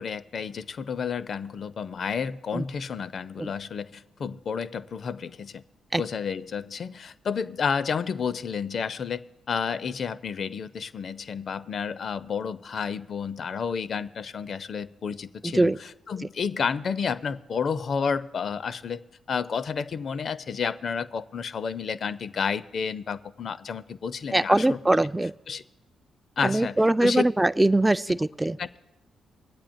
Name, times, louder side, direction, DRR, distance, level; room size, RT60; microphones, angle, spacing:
voice 1, 0.0-5.6 5.9-24.8 25.5-25.6 26.4-27.2 28.6-28.8, left 6 dB, 55° left, 15 dB, 0.5 m, -31 dB
voice 2, 15.4-15.8 24.3-25.3 26.4-28.6, right 1 dB, 15° right, 13 dB, 0.3 m, -22 dB
22.5 x 8.5 x 2.6 m, 0.97 s
hypercardioid pair, 40°, 0 cm